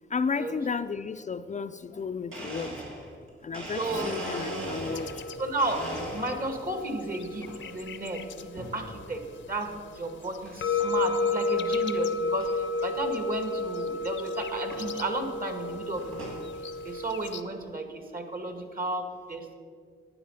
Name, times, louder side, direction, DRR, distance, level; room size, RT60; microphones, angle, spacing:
voice 1, 0.1-2.8 3.4-5.2, left 5 dB, 35° left, 10 dB, 0.4 m, -33 dB
Domestic sounds home sounds, 2.3-5.2 5.6-6.6 7.1-7.6 8.6-8.9 9.5-9.6 10.4-10.5 10.8-11.1 11.6-11.7 11.8-11.9 12.4-12.5 13.8-13.9 14.7-14.9 15.5-16.4, equal, 90° right, 3.1 m, -38 dB
voice 2, 3.8-4.1 5.4-9.2 9.5-12.5 12.8-16.3 16.8-19.6, right 2 dB, 45° right, 5 dB, 1.9 m, -33 dB
sound 1, 3.9-17.4, left 3 dB, 70° left, 0.7 m, -33 dB
11.5 x 9.1 x 5.5 m, 2.1 s
cardioid pair, 65°, 20 cm